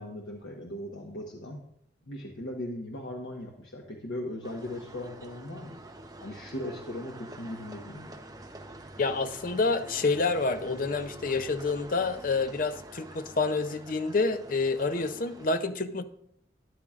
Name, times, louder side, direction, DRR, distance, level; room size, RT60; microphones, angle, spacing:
voice 1, 0.0-1.6 2.1-5.8 6.2-8.2, left 1 dB, 80° left, -1 dB, 1.2 m, -38 dB
sound 1, 4.4-15.5, right 2 dB, 20° right, 0.8 m, -47 dB
voice 2, 9.0-16.0, left 3 dB, 45° left, 10 dB, 0.5 m, -28 dB
12.5 x 10.5 x 2.4 m, 0.70 s
head